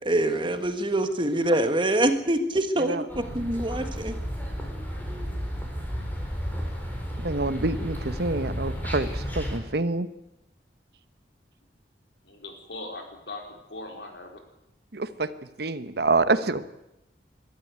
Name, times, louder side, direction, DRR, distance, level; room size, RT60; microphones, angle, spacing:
voice 1, 0.0-4.1, right 1 dB, 30° right, 8 dB, 1.6 m, -25 dB
sound 1, 3.1-9.6, equal, 10° left, 4.4 m, -32 dB
voice 2, 7.2-10.1 14.9-15.3 15.6-16.6, right 3 dB, 65° right, 13 dB, 1.1 m, -26 dB
voice 3, 12.2-14.4, left 2 dB, 75° left, 3 dB, 4.4 m, -40 dB
21.5 x 13.0 x 9.5 m, 0.88 s
head